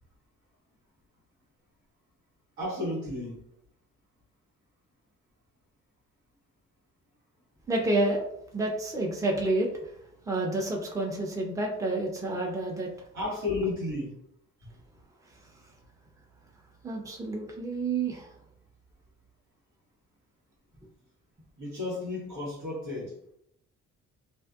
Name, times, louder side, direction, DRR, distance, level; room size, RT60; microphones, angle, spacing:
voice 1, 2.6-3.5 13.1-14.2 14.6-14.7 21.6-23.3, left 2 dB, 85° right, -4 dB, 1.3 m, -33 dB
voice 2, 7.7-8.2 8.5-9.7 10.3-12.9 16.8-18.3, right 2 dB, 10° right, -1 dB, 0.6 m, -29 dB
2.5 x 2.5 x 2.3 m, 0.72 s
cardioid pair, 90°, 30 cm